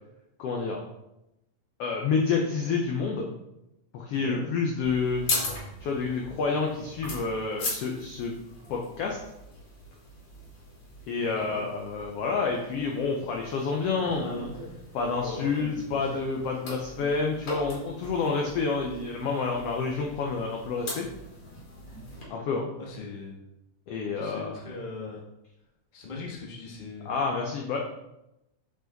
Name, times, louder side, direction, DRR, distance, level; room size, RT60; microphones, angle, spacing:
voice 1, 0.4-0.8 1.8-3.3 3.9-5.2 5.8-8.3 8.7-9.2 11.1-14.5 14.9-21.1 22.3-22.7 23.9-24.5 27.1-27.8, left 4 dB, 85° left, 1 dB, 1.3 m, -29 dB
sound 1, 4.8-22.2, left 2 dB, 45° left, 2.7 m, -39 dB
voice 2, 11.1-11.6 22.8-23.4 24.1-25.2 25.9-27.1, left 3 dB, 60° left, -3 dB, 0.4 m, -40 dB
6.6 x 5.1 x 3.9 m, 0.89 s
omnidirectional pair, 3.7 m